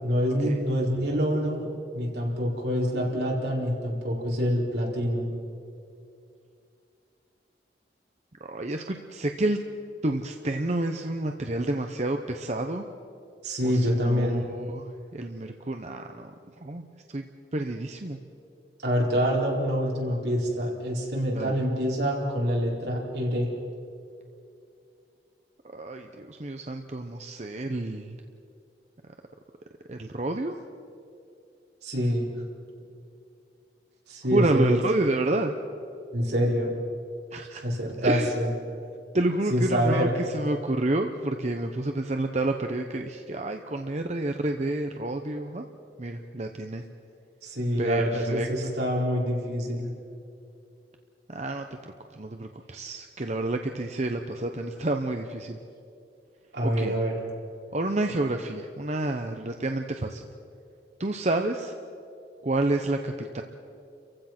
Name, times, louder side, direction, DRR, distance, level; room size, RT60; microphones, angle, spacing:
voice 1, 0.0-1.7 1.9-5.3 13.4-14.4 18.8-23.5 31.8-32.3 34.1-34.8 36.1-36.7 37.6-38.5 39.5-40.1 47.4-49.9 56.5-57.1, equal, 75° right, -2 dB, 4.4 m, -26 dB
voice 2, 8.4-9.6 10.0-12.9 13.6-16.3 16.6-17.2 17.5-18.2 21.3-21.6 25.6-28.2 29.9-30.6 34.3-35.5 37.3-37.6 38.0-38.3 39.1-45.7 46.0-46.8 47.8-48.7 51.3-55.6 56.6-56.9 57.7-60.3 61.0-61.7 62.4-63.4, right 2 dB, 40° right, 5 dB, 0.8 m, -29 dB
30.0 x 15.5 x 6.0 m, 2.5 s
head